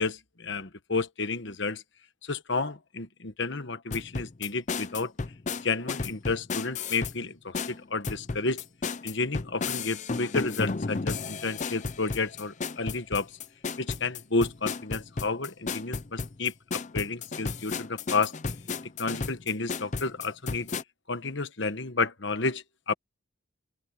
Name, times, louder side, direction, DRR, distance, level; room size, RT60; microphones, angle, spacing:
voice 1, 0.0-1.8 2.2-5.1 5.6-8.6 9.0-13.3 13.8-18.3 19.0-20.7 21.1-22.9, left 3 dB, 60° left, 1.3 m, -31 dB
sound 1, 3.9-7.2 7.5-20.8, left 4 dB, 35° left, 0.6 m, -33 dB
head